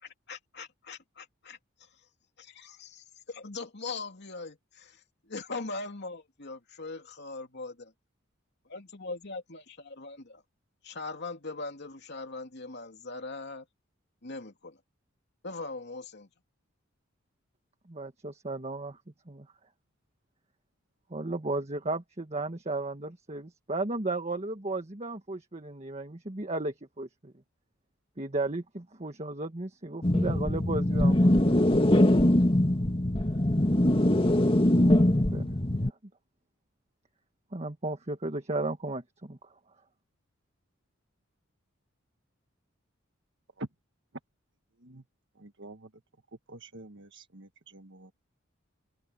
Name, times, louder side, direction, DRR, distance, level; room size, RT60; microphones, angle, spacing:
voice 1, 0.0-1.9 2.4-5.0 5.3-7.9 8.7-10.4 10.8-13.6 14.2-14.8 15.4-16.3, left 3 dB, 60° left, 2.9 m, -41 dB
voice 2, 17.9-19.0 19.3-19.5 21.1-27.3 28.2-31.6 34.8-35.5 35.7-35.9 37.5-39.5, right 2 dB, 35° right, 1.6 m, -35 dB
sound 1, 30.0-35.9, left 1 dB, 25° left, 1.9 m, -23 dB
voice 3, 45.4-45.9 46.5-48.1, right 2 dB, 60° right, 1.6 m, -45 dB
head